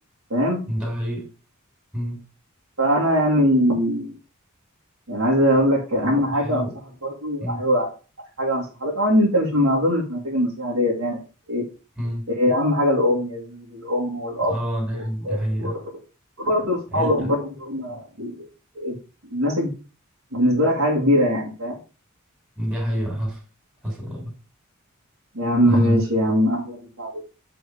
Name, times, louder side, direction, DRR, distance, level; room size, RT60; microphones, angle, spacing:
voice 1, 0.7-1.3 1.9-2.2 6.3-6.7 7.4-7.6 12.0-12.3 14.5-15.8 16.9-17.3 22.6-23.4 23.8-24.3 25.6-26.0, equal, 5° right, -3 dB, 3.1 m, -27 dB
voice 2, 2.8-4.1 5.1-6.7 7.0-7.9 8.4-11.2 11.5-11.6 12.4-14.5 14.9-15.8 16.4-18.5 18.8-19.0 19.3-19.7 20.3-21.8 25.3-27.2, equal, 70° right, -6 dB, 2.2 m, -22 dB
7.8 x 3.9 x 4.9 m, 0.34 s
head